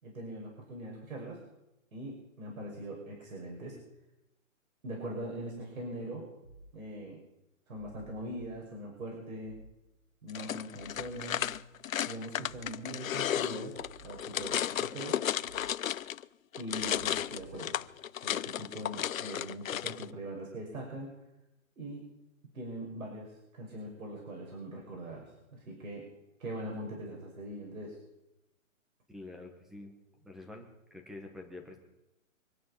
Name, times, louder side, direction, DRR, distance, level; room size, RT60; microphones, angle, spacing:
voice 1, 0.0-1.4 1.9-3.8 4.8-6.3 6.7-7.2 7.7-9.6 10.2-11.5 12.0-13.8 14.0-15.2 16.6-17.8 18.2-21.2 21.8-22.1 22.5-26.1 26.4-28.0, right 1 dB, 85° right, -2 dB, 5.9 m, -42 dB
sound 1, 6.4-6.8 7.7-8.6 9.4-9.8 10.7-11.6 12.4-12.8 13.7-14.6 15.4-15.8 16.7-17.6, right 2 dB, 20° right, 2.8 m, -53 dB
sound 2, 10.3-16.2 16.5-20.1, left 10 dB, 80° left, 0.7 m, -34 dB
voice 2, 29.1-29.9 30.2-31.8, left 2 dB, ahead, 4 dB, 1.1 m, -47 dB
24.5 x 9.5 x 5.6 m, 0.92 s
hypercardioid pair, 165°, 40 cm